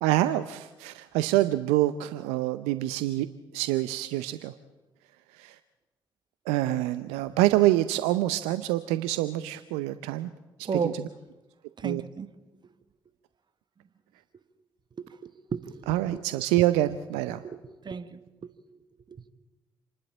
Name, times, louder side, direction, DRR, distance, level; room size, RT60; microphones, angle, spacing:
voice 1, 0.0-3.3 3.5-4.5 5.3-5.6 6.5-10.3 10.6-10.9 11.8-12.0 15.9-17.4, right 15 dB, 75° right, 13 dB, 0.6 m, -26 dB
voice 2, 11.8-12.3 15.0-16.3 17.3-18.5 19.1-19.3, right 5 dB, 45° right, 13 dB, 1.3 m, -35 dB
27.5 x 12.0 x 8.8 m, 1.1 s
figure-of-eight pair, 40°, 11 cm